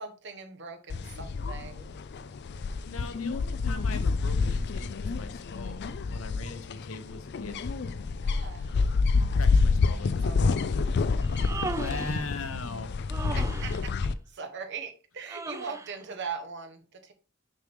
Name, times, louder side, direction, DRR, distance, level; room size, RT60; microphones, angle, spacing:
voice 1, 0.0-1.9 8.2-8.8 9.8-10.8 13.4-17.1, right 5 dB, 55° right, 1.1 m, -41 dB
sound 1, 0.9-14.1, left 4 dB, 55° left, 0.4 m, -28 dB
voice 2, 2.8-7.6 9.3-10.3 11.7-13.0, left 3 dB, 75° left, 1.0 m, -40 dB
Human voice, 11.2-12.3 13.1-13.8 15.3-16.0, right 3 dB, 15° right, 0.3 m, -37 dB
6.5 x 5.4 x 3.4 m
head